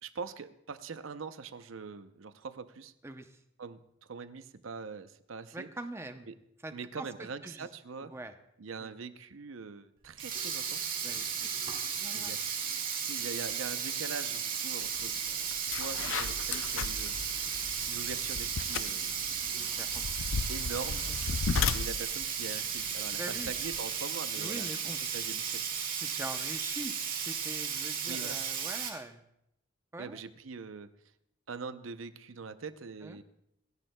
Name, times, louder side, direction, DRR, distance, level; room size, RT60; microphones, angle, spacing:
voice 1, 0.0-2.9 3.6-5.7 6.3-6.4 6.7-8.1 8.6-10.9 12.1-12.4 13.0-15.1 15.7-17.1 17.9-19.2 20.5-21.0 21.7-24.7 25.0-25.6 28.0-28.4 30.0-30.9 31.5-33.2, right 5 dB, 85° right, 11 dB, 0.7 m, -42 dB
voice 2, 3.0-3.4 5.5-6.3 6.6-7.7 8.0-8.3 8.8-8.9 11.0-11.5 11.9-12.3 19.4-20.0 21.1-21.4 23.1-23.5 24.4-25.0 26.0-27.0 27.2-29.2 29.9-30.2 33.0-33.2, right 2 dB, 15° right, 8 dB, 0.7 m, -43 dB
Sink (filling or washing), 10.0-28.9, right 7 dB, 45° right, 1.9 m, -35 dB
sound 1, 15.0-15.1 15.5-23.8, left 5 dB, 75° left, 0.5 m, -36 dB
26.5 x 10.5 x 2.2 m, 0.80 s
head